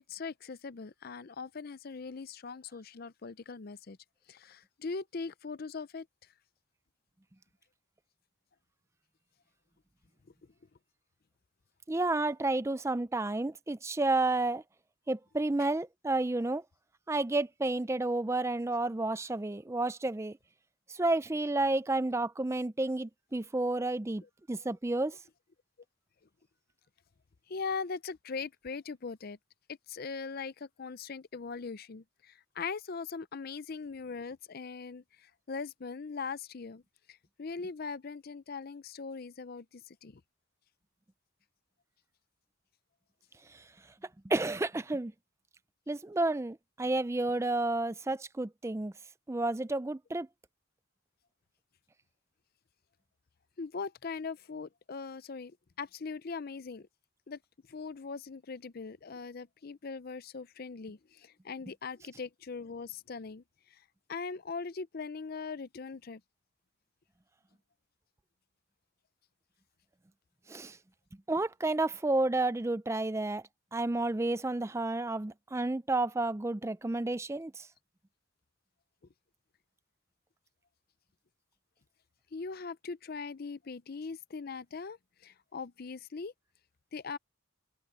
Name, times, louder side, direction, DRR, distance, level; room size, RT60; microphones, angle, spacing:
voice 1, 0.0-4.0 4.3-6.1 24.2-24.7 27.5-29.4 29.9-36.8 37.1-40.2 53.6-56.9 57.3-57.4 57.7-63.8 64.1-66.2 82.3-86.3 86.9-87.2, left 4 dB, 50° left, 0.5 m, -41 dB
voice 2, 11.9-14.6 15.1-16.6 17.1-20.4 20.9-24.2 24.5-25.2 43.5-43.6 44.2-45.1 45.9-48.9 49.3-50.3 70.5-70.8 71.3-73.4 73.7-77.7, right 2 dB, 15° right, 0.4 m, -31 dB
head